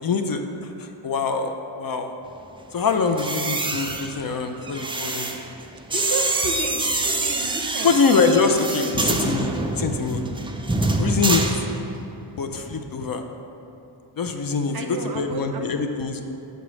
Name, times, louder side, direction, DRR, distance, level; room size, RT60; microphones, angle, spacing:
voice 1, 0.0-1.5 1.8-2.1 2.7-5.3 7.8-10.2 11.0-11.4 12.4-13.2 14.2-14.7 15.2-16.3, left 4 dB, 50° left, 6 dB, 0.5 m, -24 dB
sound 1, 3.1-12.2 12.4-12.8, right 2 dB, 10° right, 0.4 m, -26 dB
voice 2, 5.9-8.0 8.9-9.3 14.7-15.7, right 3 dB, 50° right, 4 dB, 0.7 m, -32 dB
8.0 x 3.1 x 6.0 m, 2.9 s
cardioid pair, 85°, 46 cm